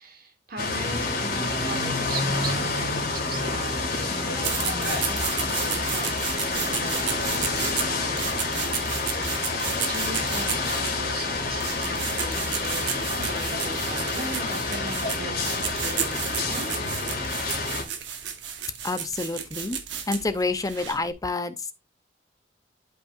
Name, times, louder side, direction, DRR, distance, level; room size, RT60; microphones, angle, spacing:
voice 1, 0.0-4.5 4.8-6.2 6.5-9.4 9.9-16.7, right 2 dB, 50° right, 2.2 m, -39 dB
sound 1, 0.6-17.8, left 3 dB, 50° left, 2.2 m, -28 dB
sound 2, 4.4-21.1, right 8 dB, 65° right, 1.2 m, -33 dB
voice 2, 18.8-19.8 20.1-21.7, left 3 dB, 20° left, 0.6 m, -28 dB
11.5 x 5.3 x 2.4 m
head